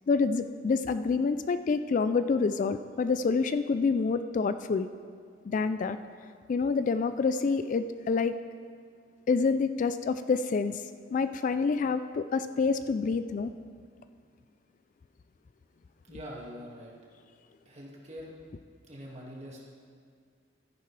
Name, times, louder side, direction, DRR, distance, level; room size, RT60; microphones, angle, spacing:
voice 1, 0.1-4.9 5.5-6.0 6.5-8.4 9.3-10.8 11.1-13.5, left 4 dB, 45° left, 11 dB, 0.3 m, -27 dB
voice 2, 16.1-16.9 17.7-18.3 18.9-19.7, equal, 35° right, -3 dB, 1.9 m, -44 dB
14.0 x 10.0 x 3.3 m, 2.2 s
head